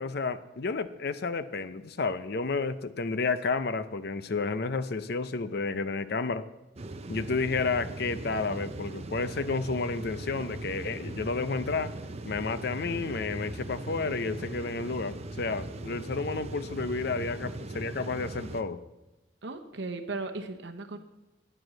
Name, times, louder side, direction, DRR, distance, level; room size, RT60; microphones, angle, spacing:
voice 1, 0.0-6.5 7.1-11.9 12.2-18.8, left 4 dB, 55° left, 13 dB, 0.6 m, -31 dB
sound 1, 6.8-18.6, right 2 dB, 30° right, 0.6 m, -39 dB
voice 2, 19.4-21.0, right 3 dB, 60° right, 6 dB, 0.9 m, -36 dB
9.9 x 7.8 x 7.5 m, 1.0 s
head